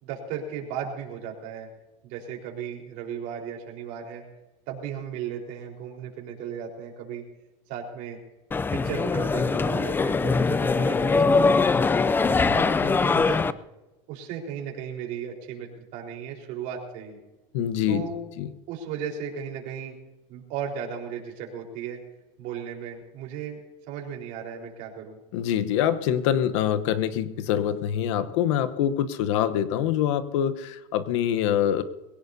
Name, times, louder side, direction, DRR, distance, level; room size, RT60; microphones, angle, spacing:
voice 1, 0.0-1.7 2.0-4.2 4.7-7.2 7.7-8.2 8.7-11.9 12.2-13.6 14.1-17.2 17.9-18.2 18.7-20.0 20.3-22.0 22.4-23.6 23.9-25.2, right 7 dB, 65° right, 0 dB, 4.2 m, -35 dB
sound 1, 8.5-13.5, left 4 dB, 15° left, 0.4 m, -22 dB
voice 2, 17.5-18.0 18.4-18.5 25.3-31.8, left 10 dB, 80° left, 11 dB, 1.0 m, -25 dB
22.0 x 17.5 x 2.8 m, 1.0 s
supercardioid pair, 130°, 15 cm